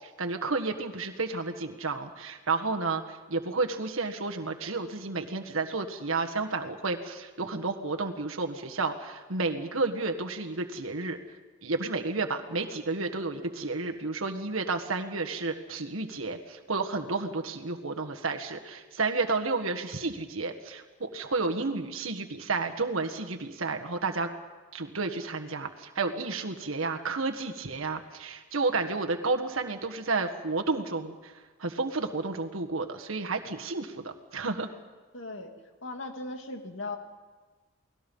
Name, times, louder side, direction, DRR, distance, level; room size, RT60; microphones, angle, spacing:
voice 1, 0.0-11.2 11.6-24.3 24.7-31.3 31.6-34.7, right 3 dB, 85° right, 4 dB, 1.6 m, -31 dB
voice 2, 35.1-35.5 35.8-37.0, left 2 dB, 65° left, 4 dB, 2.6 m, -37 dB
29.5 x 19.5 x 5.5 m, 1.4 s
head